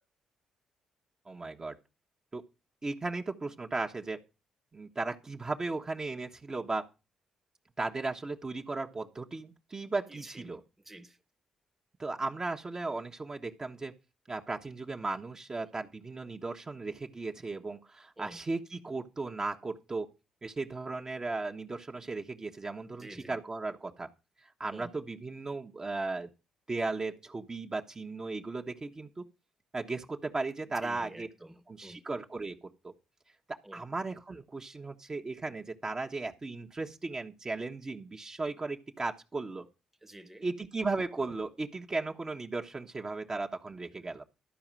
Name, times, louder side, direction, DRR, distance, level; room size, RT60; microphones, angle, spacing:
voice 1, 1.3-1.8 2.3-2.4 2.8-4.2 4.7-6.9 7.8-10.6 12.0-13.9 14.3-20.1 20.4-24.1 24.6-26.3 26.7-29.2 29.7-31.3 31.7-32.9 33.7-39.7 40.4-44.2, right 3 dB, 30° right, 1.3 m, -36 dB
voice 2, 10.1-11.2 18.2-18.4 22.9-23.4 24.7-24.9 30.8-32.0 33.6-33.8 40.0-40.5, right 1 dB, 10° right, 1.3 m, -49 dB
13.0 x 4.9 x 7.6 m
hypercardioid pair, 50°, 2 cm